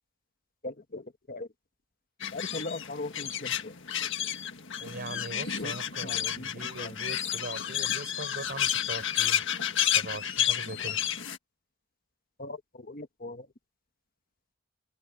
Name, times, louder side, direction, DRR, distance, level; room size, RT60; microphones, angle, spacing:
voice 1, 0.6-1.0 1.3-1.5 2.3-3.7 5.6-5.7 6.0-6.5 6.8-6.9 12.4-13.5, left 2 dB, 40° left, 1.4 m, -39 dB
sound 1, 2.2-11.4, left 10 dB, 55° left, 1.7 m, -31 dB
voice 2, 4.8-9.4 9.9-11.0, right 2 dB, 45° right, 5.6 m, -41 dB
head